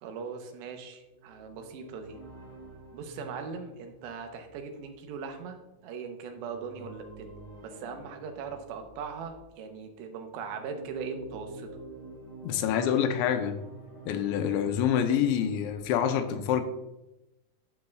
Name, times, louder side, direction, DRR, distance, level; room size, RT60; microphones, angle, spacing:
voice 1, 0.0-2.2 2.9-5.6 5.8-11.7, right 5 dB, 80° right, 5 dB, 3.0 m, -40 dB
sound 1, 1.0-9.5 10.1-15.8, right 2 dB, 15° right, 1.2 m, -49 dB
voice 2, 12.4-13.6 14.1-16.6, left 9 dB, 85° left, 7 dB, 3.0 m, -26 dB
12.0 x 6.7 x 2.3 m, 0.96 s
omnidirectional pair, 5.1 m